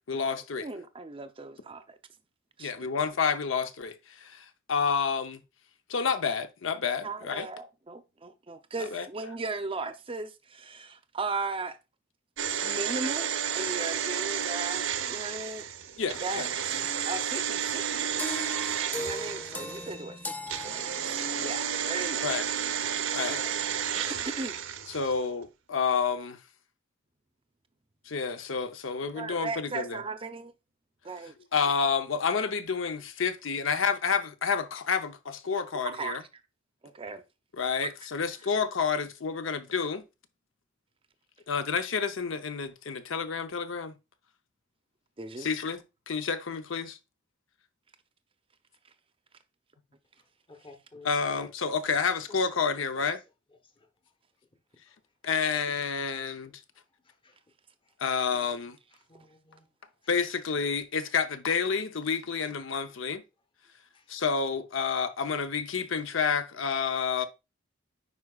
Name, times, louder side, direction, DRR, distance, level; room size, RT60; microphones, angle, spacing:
voice 1, 0.0-0.7 2.6-5.4 5.9-7.5 8.8-9.1 16.0-16.5 22.2-22.5 23.1-23.4 24.9-26.4 28.1-30.0 31.5-36.2 37.6-40.0 41.5-43.9 45.4-45.8 46.1-47.0 51.0-53.2 55.2-56.6 58.0-58.8 60.1-63.2 64.1-67.3, left 5 dB, 70° left, 0.7 m, -29 dB
voice 2, 0.6-2.0 2.6-2.9 7.0-11.8 12.6-15.7 16.2-20.3 20.6-22.3 22.8-23.0 23.3-23.5 23.9-24.6 29.0-30.5 31.0-31.3 35.8-36.2 36.8-37.2 45.2-45.5, right 3 dB, 25° right, 0.6 m, -37 dB
sound 1, 12.4-20.0 20.5-25.2 25.4-25.5, right 8 dB, 80° right, 0.7 m, -31 dB
sound 2, 18.2-21.5, left 1 dB, 10° left, 0.3 m, -38 dB
voice 3, 50.5-51.5 57.2-57.3 59.1-59.6, left 3 dB, 25° left, 1.0 m, -51 dB
9.6 x 4.7 x 2.4 m
head